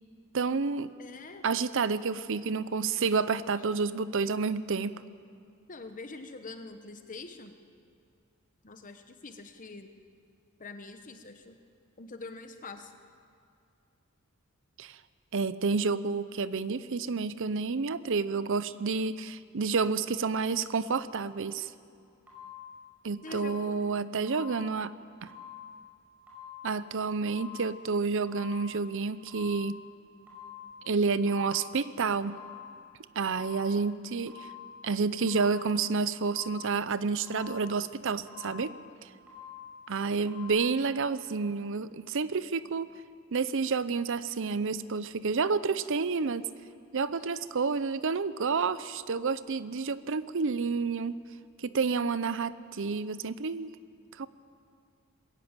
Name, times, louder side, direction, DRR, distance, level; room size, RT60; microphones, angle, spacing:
voice 1, 0.3-0.9 1.4-5.0 14.8-15.0 15.3-21.7 23.0-24.9 25.2-25.3 26.6-29.8 30.9-32.4 33.2-34.3 34.8-38.7 39.9-42.9 43.3-46.5 46.9-51.1 51.6-53.7 54.2-54.3, right 4 dB, 60° right, 15 dB, 0.7 m, -29 dB
voice 2, 1.0-1.5 3.6-3.7 5.7-7.6 8.6-9.9 10.6-11.6 12.0-12.9 23.2-23.8 47.1-47.3, left 3 dB, 35° left, 7 dB, 1.0 m, -44 dB
sound 1, 22.3-22.8 23.3-23.8 24.3-24.8 25.3-25.8 26.3-26.8 27.3-27.8 28.3-28.8 29.3-29.8 30.3-30.8 31.3-31.8 32.3-32.8 33.3-33.8 34.3-34.8 35.3-35.8 36.3-36.8 37.3-37.8 38.3-38.8 39.3-39.8 40.3-40.5, left 8 dB, 10° right, 5.4 m, -47 dB
21.0 x 16.0 x 8.9 m, 2.3 s
head